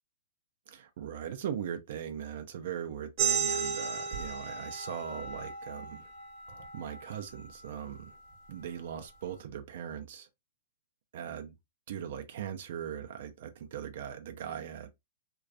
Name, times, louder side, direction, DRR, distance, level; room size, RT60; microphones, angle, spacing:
voice 1, 0.7-6.1 6.7-8.2 8.5-10.3 11.1-11.5 11.9-14.9, right 9 dB, 60° right, 0.4 m, -39 dB
sound 1, 3.2-8.3, right 6 dB, 45° right, 0.8 m, -35 dB
2.3 x 2.2 x 2.5 m
hypercardioid pair, 120°, 0 cm